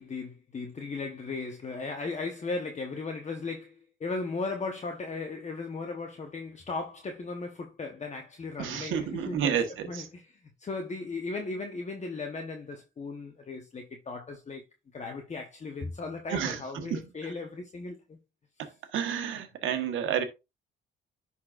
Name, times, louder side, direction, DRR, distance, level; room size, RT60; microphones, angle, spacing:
voice 1, 0.0-9.6 9.9-14.6 14.9-18.2, left 3 dB, 35° left, 1.2 m, -37 dB
voice 2, 8.6-10.1 16.3-17.1 18.6-20.2, right 8 dB, 80° right, 1.4 m, -31 dB
10.5 x 4.3 x 2.5 m
cardioid pair, 90°, 20 cm